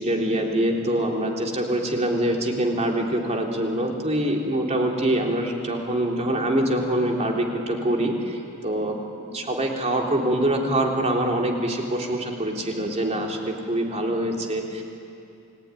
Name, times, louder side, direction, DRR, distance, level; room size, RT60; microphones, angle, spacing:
voice 1, 0.0-14.8, right 1 dB, 30° right, 0 dB, 3.4 m, -24 dB
29.5 x 19.5 x 9.8 m, 2.6 s
head